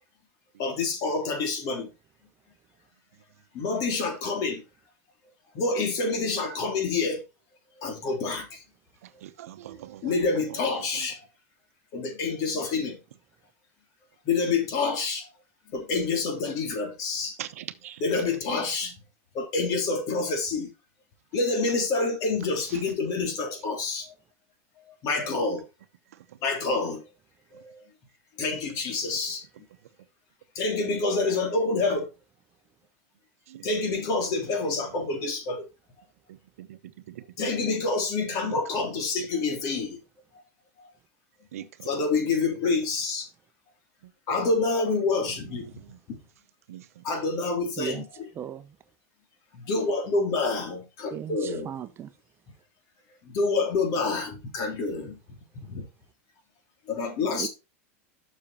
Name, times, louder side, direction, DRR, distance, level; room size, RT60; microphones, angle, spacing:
voice 1, 0.6-1.9 3.5-4.6 5.5-7.2 7.8-8.6 10.0-11.2 11.9-13.0 14.2-15.3 15.7-17.4 18.0-18.9 19.3-20.7 21.3-24.1 25.0-25.6 26.4-27.0 27.5-27.8 28.4-29.4 30.5-32.1 33.6-35.6 37.4-40.0 40.8-40.9 41.8-43.3 44.3-45.7 46.1-46.2 47.0-48.3 49.5-51.7 53.2-55.2 55.6-55.8 56.9-57.5, left 3 dB, 50° left, 3.2 m, -27 dB
voice 2, 9.0-10.2 10.5-11.1 17.4-18.2 18.5-18.6 22.7-22.8 26.1-26.4 29.0-29.1 33.5-33.7 34.8-35.2 36.3-36.8 37.1-37.7 38.4-39.0 41.5-41.9 44.0-44.1 45.3-46.0 46.7-47.4, right 12 dB, 85° right, 0.8 m, -44 dB
voice 3, 48.4-48.7 51.1-52.1 57.2-57.5, right 9 dB, 30° right, 0.8 m, -36 dB
7.0 x 6.4 x 4.3 m
supercardioid pair, 115°, 8 cm